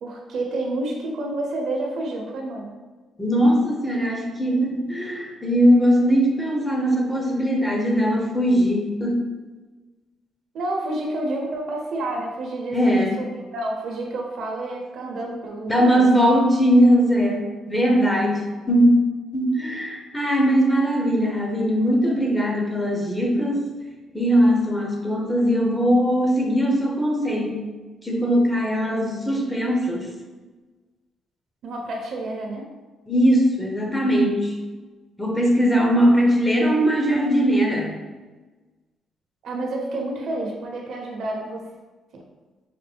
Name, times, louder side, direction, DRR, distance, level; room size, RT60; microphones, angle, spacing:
voice 1, 0.0-2.7 10.5-13.3 13.5-16.0 31.6-32.7 39.4-41.6, right 2 dB, 70° right, 0 dB, 0.8 m, -29 dB
voice 2, 3.2-9.2 12.7-13.1 15.7-23.7 24.1-27.6 28.0-30.1 33.1-34.5 35.2-37.9, equal, 10° left, 0 dB, 0.9 m, -20 dB
5.7 x 2.1 x 3.3 m, 1.3 s
cardioid pair, 90°, 0 cm